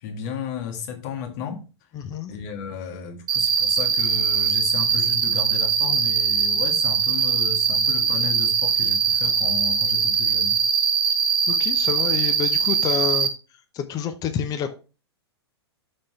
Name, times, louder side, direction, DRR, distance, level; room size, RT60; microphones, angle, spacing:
voice 1, 0.0-1.6 2.3-10.7, left 6 dB, 45° left, 1.8 m, -34 dB
voice 2, 1.9-2.3 11.5-13.3 13.7-14.7, left 8 dB, 25° left, 0.9 m, -28 dB
Cricket, 3.3-13.3, right 6 dB, 50° right, 1.5 m, -21 dB
12.5 x 4.4 x 3.3 m
figure-of-eight pair, 100°, 14 cm